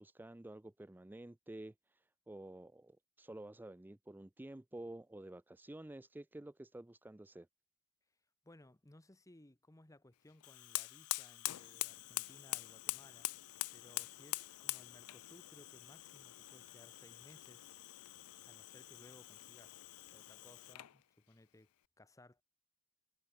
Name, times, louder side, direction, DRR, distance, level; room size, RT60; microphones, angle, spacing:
voice 1, 0.0-7.5, right 1 dB, 10° right, 0.4 m, -51 dB
voice 2, 8.4-17.7 18.4-19.8 20.1-21.7 22.0-22.4, left 1 dB, 15° left, 1.0 m, -62 dB
Fire, 10.4-21.0, left 19 dB, 80° left, 0.5 m, -44 dB
head